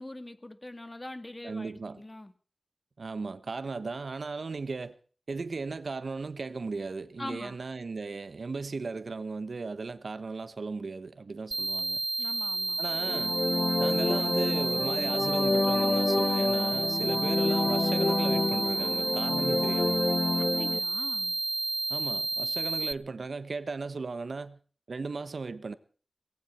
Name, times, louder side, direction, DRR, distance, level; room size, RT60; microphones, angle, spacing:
voice 1, 0.0-2.3 7.2-7.6 12.2-12.8 20.4-21.4, left 1 dB, 25° left, 1.8 m, -42 dB
voice 2, 1.4-2.0 3.0-5.0 5.3-12.0 12.8-13.4 13.8-20.0 21.9-24.6 24.9-25.7, right 4 dB, 75° right, 1.2 m, -36 dB
sound 1, 11.5-22.9, right 2 dB, 35° right, 0.7 m, -31 dB
sound 2, 12.9-20.8, left 2 dB, 45° left, 1.1 m, -28 dB
19.0 x 16.5 x 4.4 m
wide cardioid pair, 80°, 0 cm